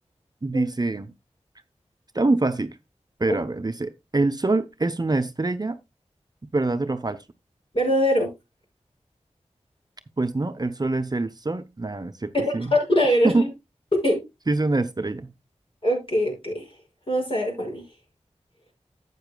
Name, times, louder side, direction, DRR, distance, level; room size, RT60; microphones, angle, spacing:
voice 1, 0.4-1.1 2.1-2.8 3.2-5.8 6.5-7.2 10.2-12.7 13.2-13.5 14.5-15.3, right 2 dB, 35° right, 0.7 m, -25 dB
voice 2, 7.7-8.3 12.3-13.5 14.0-14.2 15.8-16.6 17.1-17.8, equal, 50° left, 5.7 m, -22 dB
12.0 x 8.3 x 2.2 m
wide cardioid pair, 70°, 12 cm